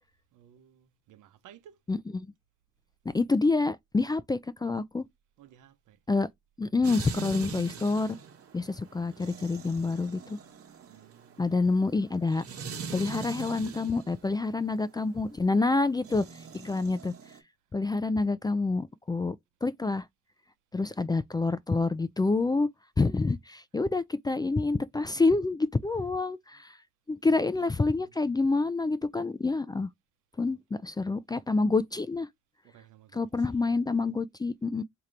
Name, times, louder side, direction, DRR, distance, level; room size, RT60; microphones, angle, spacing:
voice 1, 0.3-1.8 5.4-6.0 10.9-11.7 23.7-23.8 25.9-26.1 26.5-26.6 27.3-28.1 32.6-33.7, right 10 dB, 85° right, 0.9 m, -56 dB
voice 2, 1.9-2.3 3.1-5.0 6.1-6.3 6.6-8.2 8.5-10.4 11.4-12.4 12.9-16.2 16.5-17.1 17.7-19.4 19.6-20.1 20.7-22.7 23.0-26.8 27.1-29.9 30.4-32.3 33.1-34.8, left 3 dB, 15° left, 0.3 m, -27 dB
sound 1, 6.8-14.1 16.0-17.4, right 6 dB, 50° right, 1.2 m, -42 dB
3.7 x 2.9 x 3.2 m
cardioid pair, 90°, 30 cm